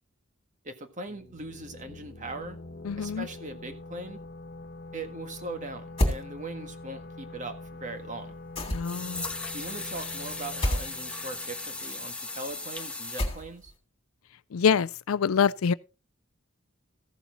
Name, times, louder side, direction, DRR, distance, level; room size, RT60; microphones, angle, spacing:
voice 1, 0.6-2.6 3.0-4.2 4.9-8.3 9.5-13.7, right 2 dB, 35° right, 1.6 m, -40 dB
sound 1, 1.1-12.6, left 2 dB, 55° left, 1.4 m, -45 dB
voice 2, 2.9-3.3 8.7-9.2 14.5-15.7, left 6 dB, 80° left, 0.5 m, -25 dB
sound 2, 6.0-6.2 8.6-9.1 10.6-10.9 13.2-13.7, left 1 dB, 30° left, 2.7 m, -27 dB
sound 3, 8.0-8.1 8.8-13.2, left 3 dB, 5° left, 1.0 m, -37 dB
15.0 x 7.1 x 3.9 m
head